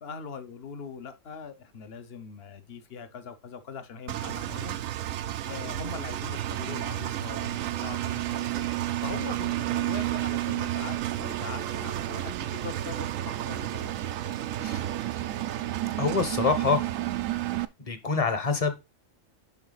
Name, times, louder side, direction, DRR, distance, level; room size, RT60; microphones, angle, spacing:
voice 1, 0.0-4.8 5.4-8.7 9.0-13.9, left 5 dB, 55° left, 1.1 m, -41 dB
Engine, 4.1-17.6, right 14 dB, 85° right, 1.0 m, -31 dB
voice 2, 16.0-16.8 17.8-18.8, left 4 dB, 30° left, 1.0 m, -26 dB
7.2 x 5.6 x 4.0 m
omnidirectional pair, 1.3 m